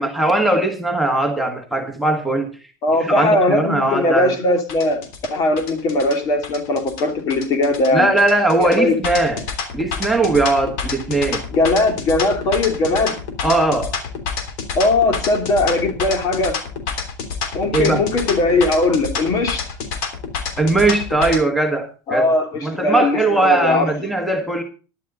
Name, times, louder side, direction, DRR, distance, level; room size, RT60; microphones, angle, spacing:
voice 1, 0.0-2.5 3.0-4.3 7.9-9.4 9.7-11.4 13.4-13.9 17.7-18.0 20.6-22.3 22.6-24.6, right 2 dB, ahead, 1.6 m, -19 dB
voice 2, 2.8-5.0 5.3-8.1 8.6-9.0 11.5-13.2 14.7-16.6 17.5-19.7 22.1-23.9, left 2 dB, 45° left, 2.8 m, -19 dB
sound 1, 4.7-21.4, left 6 dB, 75° left, 3.2 m, -28 dB
11.5 x 11.5 x 3.9 m
cardioid pair, 145°, 9 cm